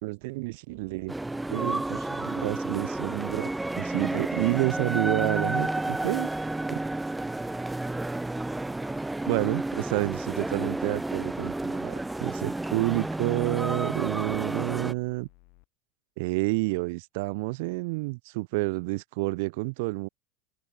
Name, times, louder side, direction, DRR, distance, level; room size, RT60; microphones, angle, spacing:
voice 1, 0.0-1.1 1.5-6.3 6.7-6.8 9.2-15.3 16.2-20.1, right 26 dB, 65° right, 1.3 m, -29 dB
sound 1, 0.7-9.1 10.2-13.5 14.4-15.7, left 31 dB, 60° left, 6.7 m, -58 dB
sound 2, 1.1-14.9, right 2 dB, 10° right, 1.2 m, -31 dB
open air
hypercardioid pair, 75°, 0 cm